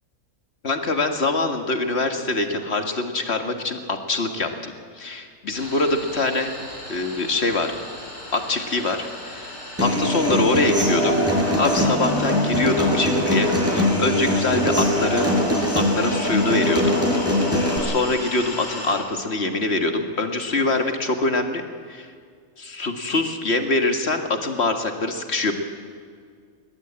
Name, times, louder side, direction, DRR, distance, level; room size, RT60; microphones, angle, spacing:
voice 1, 0.6-6.5 6.9-7.7 8.3-9.5 9.8-11.2 11.6-15.3 15.8-16.9 17.5-21.6 21.9-22.1 22.6-25.5, left 2 dB, 50° left, 5 dB, 2.1 m, -24 dB
sound 1, 5.5-19.0, left 1 dB, 75° left, 6.4 m, -37 dB
Human voice / Acoustic guitar, 9.8-17.8, left 1 dB, 10° right, 5.3 m, -21 dB
21.5 x 19.5 x 8.8 m, 2.1 s
omnidirectional pair, 1.4 m